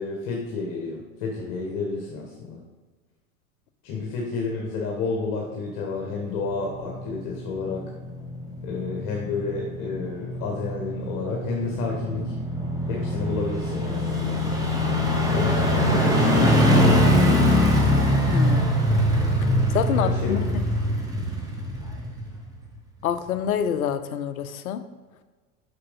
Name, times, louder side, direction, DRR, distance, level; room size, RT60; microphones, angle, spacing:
voice 1, 0.0-2.6 3.8-7.8 8.6-12.3 12.9-14.4 15.3-17.4 19.9-20.5, left 4 dB, 45° left, -1 dB, 1.6 m, -30 dB
sound 1, 6.1-22.6 23.0-23.1, equal, 10° right, 2.0 m, -23 dB
voice 2, 18.3-18.6 19.7-20.4 23.0-24.8, left 9 dB, 70° left, 11 dB, 0.8 m, -26 dB
6.7 x 6.2 x 5.3 m, 1.4 s
figure-of-eight pair, 85°, 44 cm